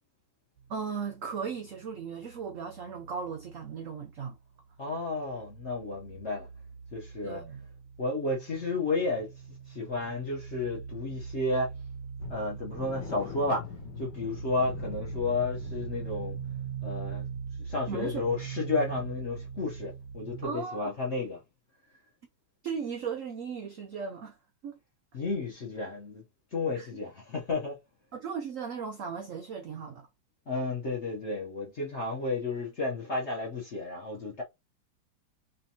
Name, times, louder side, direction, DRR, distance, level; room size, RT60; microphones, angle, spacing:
sound 1, 0.6-4.4 4.7-20.5, right 7 dB, 65° right, 1.0 m, -42 dB
voice 1, 0.7-4.4 7.2-7.7 17.9-18.2 20.4-20.9 22.6-24.4 24.6-24.8 26.7-26.9 28.1-30.1, right 6 dB, 80° right, 0.7 m, -36 dB
voice 2, 4.8-6.5 6.9-7.4 8.0-9.3 9.7-11.7 12.3-13.7 14.0-16.4 16.8-17.3 17.6-21.4 25.1-26.2 26.5-27.8 30.5-34.4, left 3 dB, 50° left, 0.8 m, -32 dB
sound 2, 12.2-20.0 20.2-20.4 20.8-20.9, left 7 dB, 70° left, 1.4 m, -45 dB
3.3 x 2.8 x 2.7 m
omnidirectional pair, 2.1 m